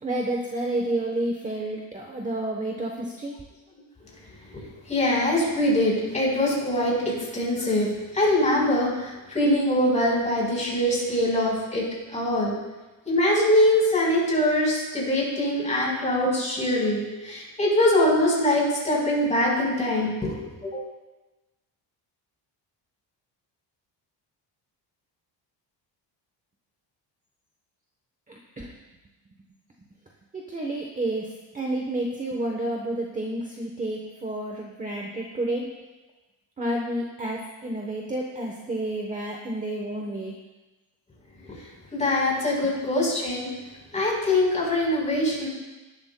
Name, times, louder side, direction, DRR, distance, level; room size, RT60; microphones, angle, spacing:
voice 1, 0.0-3.3 28.3-28.7 30.3-31.2 31.5-35.7 36.6-40.4, right 1 dB, 15° right, 0 dB, 0.9 m, -30 dB
voice 2, 4.9-11.9 12.1-12.5 13.1-20.8 41.9-43.5 43.9-45.5, left 1 dB, 15° left, -4 dB, 4.1 m, -23 dB
18.5 x 11.5 x 2.2 m, 1.1 s
cardioid pair, 160°, 44 cm